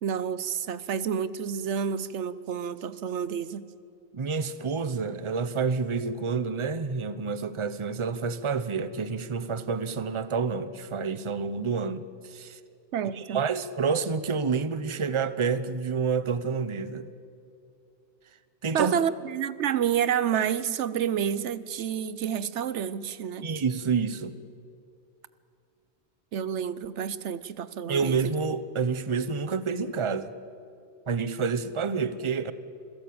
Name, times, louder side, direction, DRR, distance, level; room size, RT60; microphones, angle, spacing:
voice 1, 0.0-3.7 12.9-13.5 18.7-23.5 26.3-28.3, right 8 dB, 85° right, 1.1 m, -29 dB
voice 2, 4.1-12.6 13.0-17.1 18.6-18.9 23.4-24.4 27.9-30.3 31.1-32.5, right 5 dB, 30° right, 0.8 m, -28 dB
26.5 x 16.5 x 8.6 m
omnidirectional pair, 1.2 m